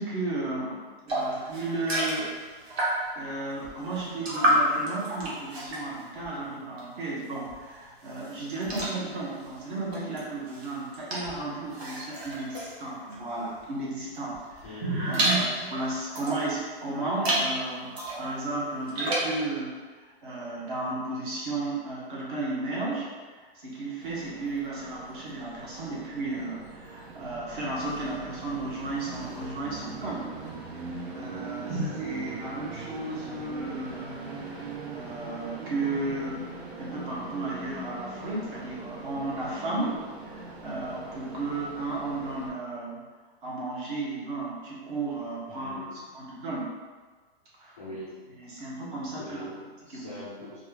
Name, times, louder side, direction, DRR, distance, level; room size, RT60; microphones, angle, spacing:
voice 1, 0.0-2.3 2.6-30.3 30.7-34.3 34.9-36.5 36.8-43.0 43.4-46.7 47.6-47.8 48.4-49.5 49.9-50.2, right 2 dB, 55° right, -5 dB, 1.5 m, -34 dB
sound 1, 1.1-3.2 3.6-7.0 7.4-13.7 14.1-16.5 17.0-17.5 17.9-19.4, right 1 dB, 75° right, 1.4 m, -31 dB
voice 2, 14.6-15.3 31.5-32.0 45.5-46.0 47.8-48.2 49.2-50.6, left 1 dB, 15° left, -12 dB, 0.3 m, -42 dB
Train, 24.0-42.5, right 3 dB, 90° right, 0.9 m, -41 dB
4.4 x 2.6 x 3.3 m, 1.4 s
hypercardioid pair, 165°, 31 cm